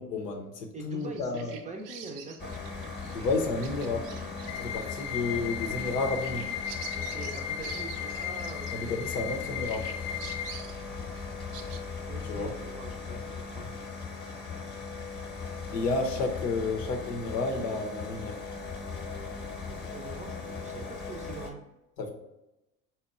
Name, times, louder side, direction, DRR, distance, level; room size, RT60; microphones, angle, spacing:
voice 1, 0.0-1.5 3.1-4.1 4.5-6.5 8.7-9.9 12.2-12.5 15.7-18.4 22.0-22.1, left 3 dB, 85° left, 3 dB, 0.7 m, -31 dB
voice 2, 0.7-2.6 6.9-9.3 12.1-13.7 19.7-21.6, right 3 dB, 15° right, 2 dB, 0.4 m, -43 dB
Bird vocalization bird call bird song, 0.9-9.3 9.7-11.8, right 7 dB, 80° right, 0.5 m, -47 dB
sound 1, 2.4-21.5, left 4 dB, 20° left, 0.9 m, -39 dB
sound 2, 4.5-10.5, left 10 dB, 50° left, 0.4 m, -36 dB
4.1 x 2.2 x 3.6 m, 0.93 s
hypercardioid pair, 60°, 46 cm